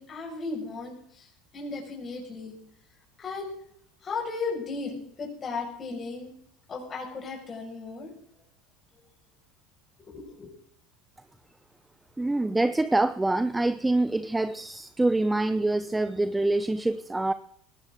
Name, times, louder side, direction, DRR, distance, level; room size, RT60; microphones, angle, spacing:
voice 1, 0.0-2.6 3.2-3.5 4.0-6.3 6.7-8.1 8.9-9.0 10.0-10.5, left 4 dB, 35° left, -1 dB, 6.0 m, -36 dB
voice 2, 12.2-17.3, right 2 dB, 10° right, 13 dB, 0.7 m, -25 dB
18.5 x 14.5 x 3.8 m, 0.66 s
hypercardioid pair, 85°, 0 cm